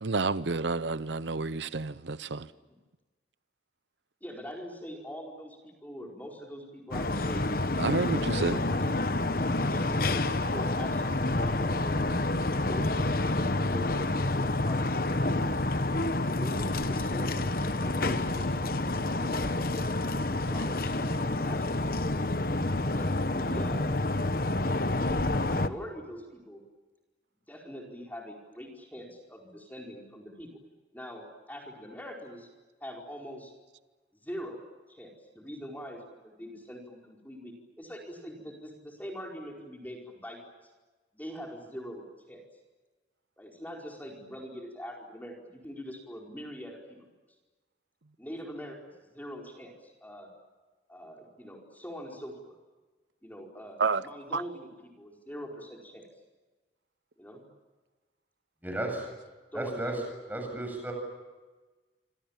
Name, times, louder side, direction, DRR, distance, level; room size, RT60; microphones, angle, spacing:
voice 1, 0.0-2.5 7.8-8.6 53.8-54.0 54.3-54.4, right 4 dB, 80° right, 0.8 m, -29 dB
voice 2, 4.2-7.4 7.8-9.0 9.7-12.0 12.5-15.5 16.2-19.8 20.3-22.1 22.9-23.9 24.8-26.6 27.5-30.5 30.9-32.5 32.8-33.5 34.2-34.6 34.9-40.4 41.1-42.4 43.4-47.0 48.2-50.3 50.9-52.6 53.2-56.0 57.2-57.4 59.5-60.0, equal, 10° left, 4.7 m, -43 dB
sound 1, 6.9-25.7, left 2 dB, 50° left, 1.2 m, -28 dB
voice 3, 58.6-59.0 59.5-60.0 60.3-60.9, right 1 dB, 10° right, 7.8 m, -33 dB
27.0 x 27.0 x 7.4 m
head